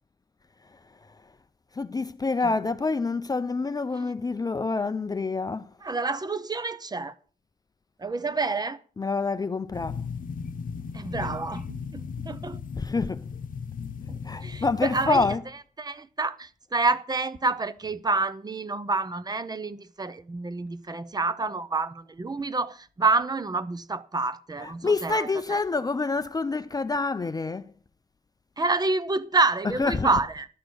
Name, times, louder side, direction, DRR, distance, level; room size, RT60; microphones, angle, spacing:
voice 1, 1.8-5.7 9.0-10.0 12.8-13.2 14.2-15.5 24.6-27.7 29.6-30.2, left 3 dB, 25° left, 0.4 m, -27 dB
voice 2, 5.8-7.1 8.0-8.8 10.9-12.6 14.1-15.4 15.8-25.6 28.6-30.5, right 3 dB, 25° right, 0.7 m, -28 dB
sound 1, 9.7-15.4, left 6 dB, 60° left, 0.9 m, -36 dB
11.5 x 6.5 x 7.8 m
wide cardioid pair, 155°, 16 cm